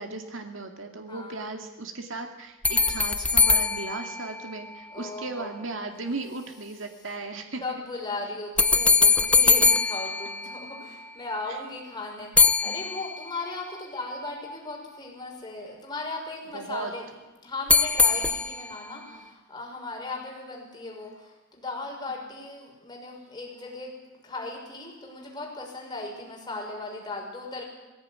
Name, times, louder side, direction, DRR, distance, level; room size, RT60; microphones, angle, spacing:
voice 1, 0.0-7.8 11.5-11.6 12.7-12.8 16.5-16.9 19.1-19.3, right 3 dB, 75° right, 4 dB, 2.4 m, -36 dB
voice 2, 1.1-1.4 4.9-5.7 7.6-17.1 17.4-23.9 24.2-27.6, left 2 dB, 20° left, -1 dB, 6.2 m, -37 dB
sound 1, 2.6-5.0 8.6-11.1 12.4-13.5 17.7-18.9, left 4 dB, 5° left, 0.7 m, -22 dB
19.5 x 16.5 x 9.8 m, 1.1 s
head